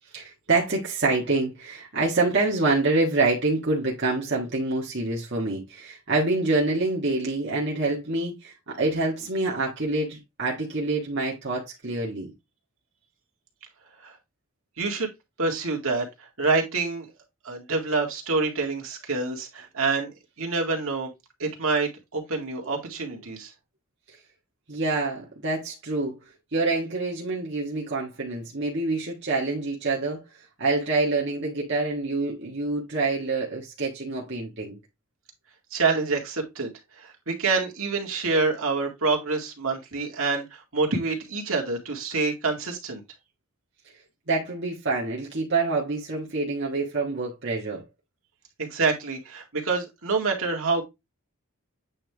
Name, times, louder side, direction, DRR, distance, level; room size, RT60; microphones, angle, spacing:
voice 1, 0.1-12.3 24.7-26.2 26.5-30.2 30.6-34.8 44.3-47.8, right 3 dB, 55° right, 1.7 m, -26 dB
voice 2, 14.8-15.1 15.4-17.1 17.4-21.1 21.4-23.5 35.7-36.7 37.0-43.0 48.6-50.8, right 3 dB, 70° right, 2.0 m, -27 dB
8.6 x 3.4 x 3.5 m
head